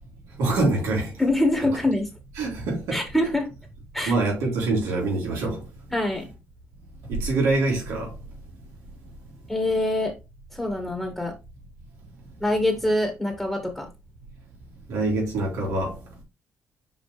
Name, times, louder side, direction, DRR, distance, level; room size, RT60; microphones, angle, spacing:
voice 1, 0.4-1.1 2.4-3.0 4.1-5.6 7.1-8.1 14.9-15.9, right 2 dB, 85° right, 3.6 m, -24 dB
voice 2, 1.2-2.1 2.9-3.5 3.9-4.1 5.9-6.3 9.5-10.1 10.5-11.3 12.4-13.9, left 1 dB, 5° left, 1.9 m, -24 dB
6.0 x 4.7 x 3.3 m
cardioid pair, 85°, 5 cm